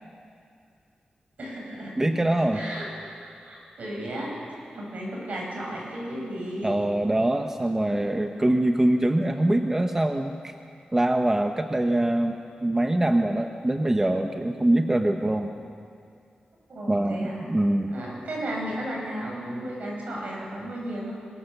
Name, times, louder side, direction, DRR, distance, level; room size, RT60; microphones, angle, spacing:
voice 1, 1.4-2.1 2.5-2.8 3.2-4.3 4.7-6.7 7.9-8.0 16.7-17.4 17.9-21.1, right 1 dB, 65° right, -2 dB, 7.6 m, -34 dB
voice 2, 2.0-2.7 6.6-10.5 10.9-15.5 16.9-17.9, right 1 dB, 15° right, 5 dB, 0.9 m, -24 dB
23.5 x 23.0 x 7.1 m, 2.4 s
wide cardioid pair, 140°, 3 cm